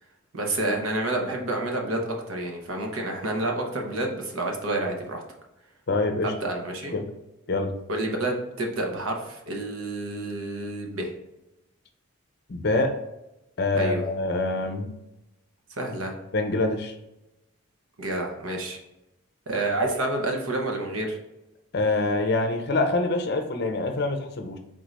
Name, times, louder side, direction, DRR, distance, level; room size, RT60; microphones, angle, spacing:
voice 1, 0.3-5.2 6.2-6.9 7.9-11.1 13.7-14.0 15.7-16.1 18.0-18.8 19.5-21.2, right 2 dB, 70° right, 2 dB, 0.9 m, -29 dB
voice 2, 5.9-6.3 6.9-7.1 7.5-7.7 12.5-13.0 13.6-14.9 16.3-16.9 21.7-24.6, left 2 dB, 50° left, 5 dB, 0.6 m, -25 dB
3.8 x 3.7 x 3.2 m, 0.92 s
head